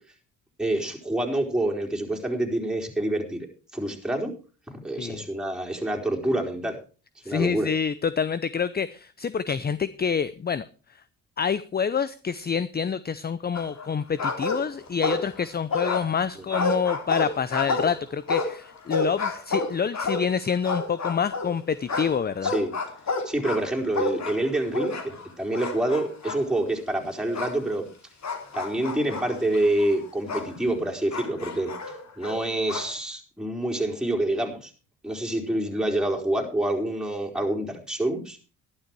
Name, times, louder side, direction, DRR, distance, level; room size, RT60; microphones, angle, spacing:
voice 1, 0.6-3.5 3.7-4.3 4.7-6.8 7.2-7.7 22.4-22.7 23.2-27.9 28.5-31.7 32.2-34.7 35.0-38.4, right 1 dB, ahead, 0 dB, 4.3 m, -27 dB
voice 2, 7.2-10.7 11.4-22.5, left 6 dB, 25° left, 17 dB, 0.7 m, -27 dB
sound 1, 13.6-13.9 14.2-15.4 15.7-21.5 21.9-25.3 25.5-26.4 27.3-27.6 28.2-30.5 31.1-32.9, left 3 dB, 45° left, 3.3 m, -30 dB
12.0 x 11.5 x 4.7 m, 0.36 s
hypercardioid pair, 60°, 38 cm